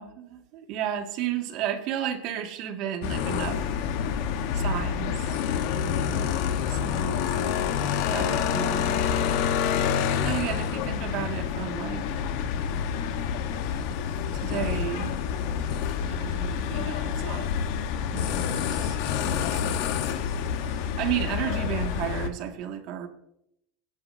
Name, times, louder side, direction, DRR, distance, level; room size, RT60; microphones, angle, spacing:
voice 1, 0.0-3.7 4.5-6.3 6.7-7.4 8.1-9.4 10.2-12.1 14.3-15.2 16.1-17.5 18.1-19.8 21.0-23.1, right 10 dB, 50° right, 2.0 m, -33 dB
sound 1, 3.0-22.3, left 8 dB, 60° left, 1.2 m, -28 dB
22.5 x 11.0 x 2.7 m
supercardioid pair, 150°, 0 cm